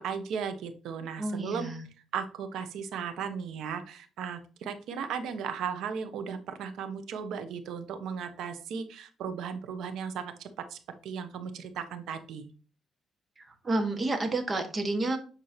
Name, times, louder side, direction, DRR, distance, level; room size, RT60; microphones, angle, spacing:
voice 1, 0.0-1.7 2.1-12.5, right 6 dB, 80° right, 9 dB, 1.1 m, -36 dB
voice 2, 1.2-1.8 13.6-15.2, right 2 dB, 30° right, 6 dB, 1.6 m, -29 dB
8.4 x 4.6 x 2.9 m, 0.37 s
cardioid pair, 90°, 0 cm